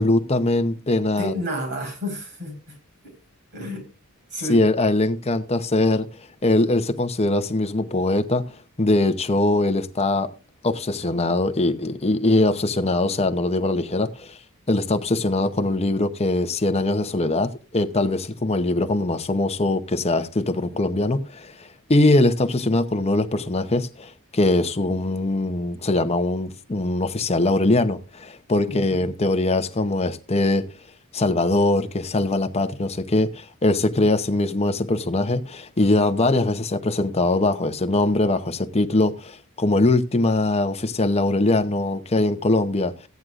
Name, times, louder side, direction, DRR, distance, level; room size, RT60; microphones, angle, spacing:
voice 1, 0.0-1.3 4.5-8.5 8.8-10.3 10.6-14.4 14.7-30.7 31.1-43.1, left 2 dB, 30° left, 0.8 m, -22 dB
voice 2, 1.2-2.8 3.0-3.1 3.5-3.8 4.3-4.6 28.7-29.1, equal, 50° right, 4.8 m, -31 dB
15.0 x 9.4 x 2.5 m
head